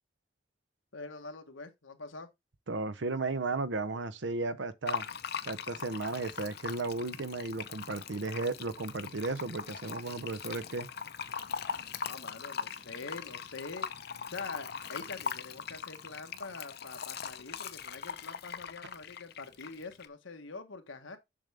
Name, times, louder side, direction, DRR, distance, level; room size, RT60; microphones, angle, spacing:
voice 1, 0.9-2.3 12.0-21.2, left 3 dB, 90° left, 1.4 m, -45 dB
voice 2, 2.7-5.1 5.5-10.9, right 3 dB, 70° right, 0.7 m, -34 dB
Fill (with liquid), 4.9-20.1, left 6 dB, 55° left, 0.7 m, -41 dB
7.1 x 6.7 x 3.4 m
head